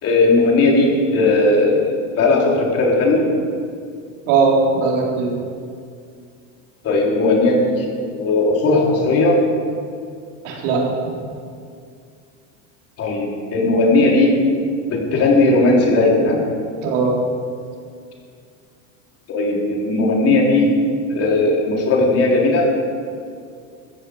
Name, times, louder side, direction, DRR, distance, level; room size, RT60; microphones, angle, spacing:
voice 1, 0.0-3.2 6.8-7.9 8.1-9.4 13.0-14.3 14.9-16.4 19.3-20.7 21.1-22.7, left 2 dB, 35° left, -2 dB, 3.5 m, -17 dB
voice 2, 4.3-5.3 10.4-10.9 16.8-17.2, right 4 dB, 70° right, -2 dB, 4.0 m, -18 dB
15.5 x 14.5 x 5.0 m, 2.2 s
supercardioid pair, 140°, 39 cm